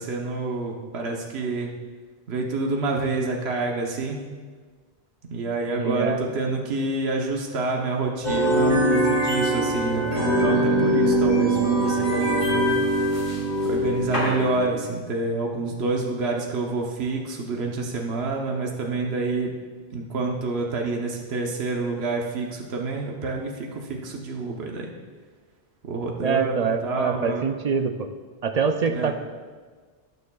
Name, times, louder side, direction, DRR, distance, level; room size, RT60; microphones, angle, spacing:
voice 1, 0.0-1.7 2.3-4.2 5.3-13.0 13.6-19.5 19.9-24.9 25.8-27.5 28.8-29.1, right 3 dB, 80° right, 0 dB, 1.2 m, -28 dB
voice 2, 5.7-6.2 26.2-28.1 28.4-29.1, right 5 dB, 50° right, 7 dB, 0.5 m, -25 dB
sound 1, 8.2-14.6, right 1 dB, 55° left, 2.9 m, -22 dB
18.5 x 6.6 x 2.3 m, 1.5 s
omnidirectional pair, 1.1 m